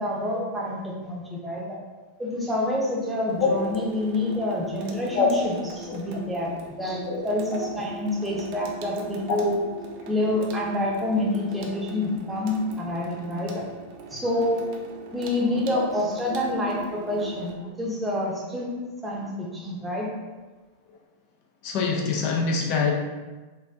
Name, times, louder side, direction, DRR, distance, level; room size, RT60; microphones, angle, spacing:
voice 1, 0.0-1.8 2.2-6.5 6.8-9.6 10.1-13.6 14.1-14.7 15.1-18.7 19.0-20.1, left 1 dB, 10° right, -3 dB, 0.8 m, -27 dB
Water tap faucet / Sink (filling or washing), 3.3-17.5, right 3 dB, 45° right, 0.5 m, -41 dB
voice 2, 4.6-5.5 5.9-6.0 7.1-7.2 7.7-7.8 9.3-9.5 21.6-22.9, left 4 dB, 45° left, 0 dB, 0.5 m, -25 dB
4.0 x 2.5 x 2.6 m, 1.3 s
figure-of-eight pair, 90°, 0 cm